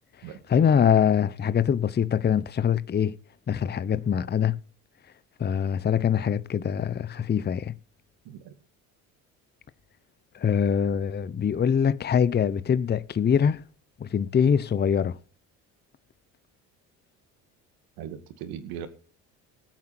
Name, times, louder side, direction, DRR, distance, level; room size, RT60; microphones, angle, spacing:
voice 1, 0.3-3.2 3.5-4.6 5.4-7.7 10.3-13.6 14.0-15.2, left 8 dB, 25° left, 0.7 m, -23 dB
voice 2, 18.0-18.9, right 9 dB, 75° right, 2.3 m, -38 dB
19.5 x 8.5 x 4.4 m
supercardioid pair, 75°, 37 cm